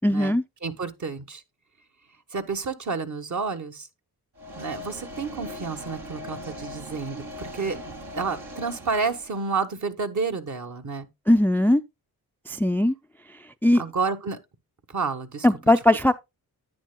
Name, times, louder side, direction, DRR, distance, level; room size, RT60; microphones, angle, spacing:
voice 1, 0.0-0.4 11.3-11.8 12.5-12.9 13.6-13.8 15.4-16.1, left 1 dB, 5° left, 0.4 m, -19 dB
voice 2, 0.6-1.4 2.3-3.9 4.5-11.1 13.7-14.4 14.9-15.5, right 4 dB, 45° right, 1.3 m, -30 dB
sound 1, 4.4-9.5, left 1 dB, 75° right, 2.7 m, -40 dB
10.5 x 8.9 x 2.2 m
cardioid pair, 55°, 39 cm